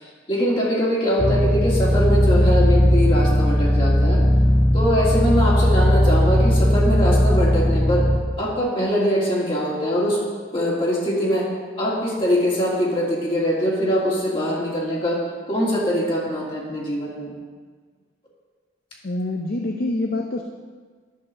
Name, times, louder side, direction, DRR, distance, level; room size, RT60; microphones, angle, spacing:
voice 1, 0.0-4.2 4.7-8.1 8.4-10.2 10.5-11.5 11.8-15.2 15.5-17.3, equal, 30° left, -5 dB, 2.1 m, -22 dB
sound 1, 1.2-8.2, equal, 10° left, 0.8 m, -17 dB
voice 2, 19.0-20.4, left 2 dB, 55° left, 3 dB, 0.6 m, -26 dB
11.0 x 5.3 x 6.4 m, 1.5 s
head